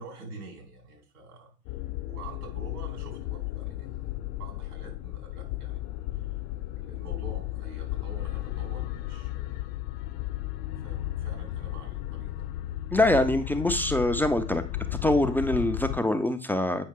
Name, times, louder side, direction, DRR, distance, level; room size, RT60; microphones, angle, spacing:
voice 1, 0.0-1.5 2.0-5.9 6.1-6.3 6.7-9.7 10.7-12.5, right 3 dB, 75° right, 1 dB, 3.9 m, -46 dB
sound 1, 1.7-16.0, left 15 dB, 55° left, 0.8 m, -34 dB
voice 2, 12.9-14.6 15.0-16.9, left 1 dB, 5° left, 7 dB, 0.4 m, -24 dB
8.6 x 5.5 x 3.6 m, 0.37 s
hypercardioid pair, 90°, 46 cm